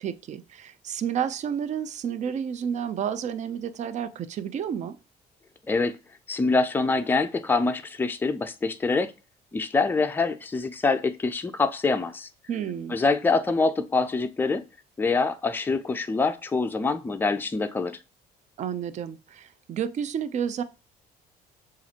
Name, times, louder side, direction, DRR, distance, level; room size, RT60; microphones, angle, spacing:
voice 1, 0.0-5.0 12.5-13.0 18.6-20.6, right 8 dB, 45° right, 0.5 m, -31 dB
voice 2, 5.7-6.0 6.3-9.1 9.5-12.3 12.9-14.6 15.0-18.0, left 3 dB, 10° left, 0.4 m, -25 dB
7.0 x 2.5 x 2.8 m
cardioid pair, 110°, 17 cm